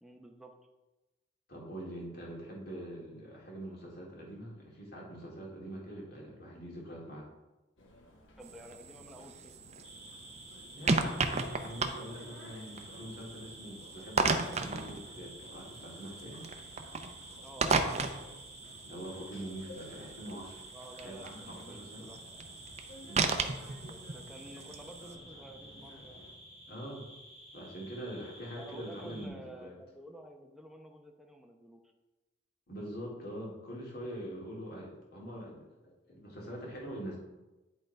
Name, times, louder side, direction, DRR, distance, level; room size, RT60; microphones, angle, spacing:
voice 1, 0.0-0.5 8.4-9.5 17.4-18.4 20.7-22.2 23.2-23.6 23.8-26.2 28.6-31.8, right 1 dB, ahead, 2 dB, 0.8 m, -51 dB
voice 2, 1.5-7.3 10.7-16.4 18.8-20.6 21.0-22.1 23.0-23.4 26.7-27.1 27.5-29.8 32.7-37.2, right 1 dB, 55° left, -3 dB, 2.2 m, -44 dB
sound 1, 7.8-26.4, left 1 dB, 85° left, 1.2 m, -56 dB
sound 2, 8.4-25.2, right 4 dB, 35° right, 0.6 m, -36 dB
sound 3, 9.8-29.3, equal, 30° left, 2.0 m, -52 dB
10.5 x 3.9 x 4.4 m, 1.1 s
head